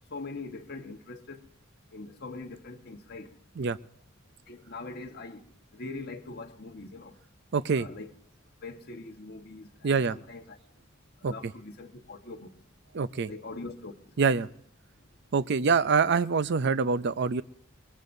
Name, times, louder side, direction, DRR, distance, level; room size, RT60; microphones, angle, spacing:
voice 1, 0.1-1.5 1.9-3.3 4.5-5.5 5.7-7.2 7.7-8.1 8.6-10.6 11.2-12.5 13.2-14.2, left 3 dB, 50° left, 1.4 m, -42 dB
voice 2, 7.5-7.9 9.8-10.2 11.2-11.3 12.9-13.3 14.2-14.5 15.3-17.4, right 5 dB, 55° right, 0.5 m, -25 dB
22.5 x 21.5 x 2.7 m
head